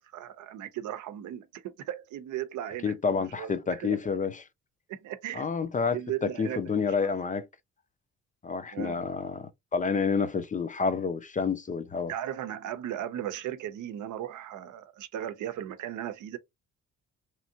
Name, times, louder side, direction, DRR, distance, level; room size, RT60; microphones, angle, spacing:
voice 1, 0.1-4.0 4.9-5.5 5.9-7.1 8.7-9.0 12.1-16.4, right 11 dB, 75° right, 0.7 m, -37 dB
voice 2, 2.8-4.4 5.3-7.5 8.4-12.1, left 5 dB, 25° left, 0.5 m, -29 dB
3.2 x 2.6 x 2.7 m
cardioid pair, 90°, 30 cm